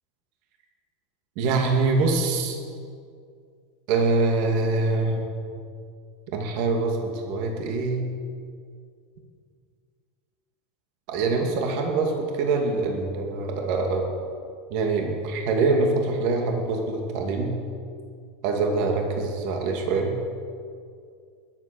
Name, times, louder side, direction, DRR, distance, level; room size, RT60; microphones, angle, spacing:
voice 1, 1.4-2.6 3.9-5.2 6.3-8.1 11.1-14.1 14.7-17.5 18.4-20.1, right 3 dB, 55° right, 2 dB, 2.3 m, -24 dB
20.5 x 8.0 x 7.0 m, 2.2 s
supercardioid pair, 155°, 0 cm